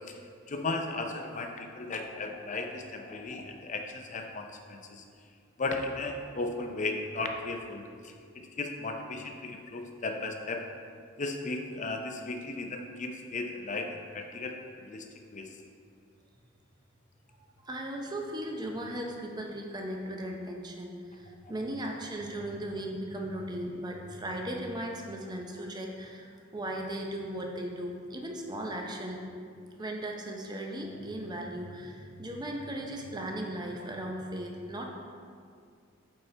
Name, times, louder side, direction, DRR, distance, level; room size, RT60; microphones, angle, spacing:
voice 1, 0.5-5.0 5.6-7.8 8.4-10.6 11.2-14.6 14.9-15.0 15.3-15.5, left 3 dB, 35° left, 4 dB, 0.5 m, -35 dB
voice 2, 17.6-29.2 29.8-34.9, right 1 dB, 20° right, 1 dB, 0.6 m, -37 dB
8.6 x 4.2 x 3.3 m, 2.2 s
head